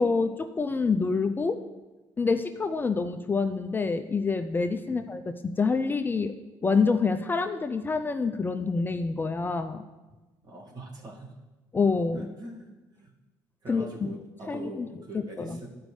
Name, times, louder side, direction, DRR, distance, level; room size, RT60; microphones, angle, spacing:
voice 1, 0.0-1.6 2.2-6.3 6.6-9.8 11.7-12.3 13.7-14.1 14.5-14.9 15.1-15.6, left 4 dB, 20° left, 7 dB, 0.4 m, -27 dB
voice 2, 4.8-5.2 10.4-11.3 12.1-12.7 13.0-13.1 13.6-15.7, right 1 dB, 45° right, -1 dB, 2.0 m, -43 dB
12.0 x 5.1 x 3.2 m, 1.1 s
cardioid pair, 90°, 9 cm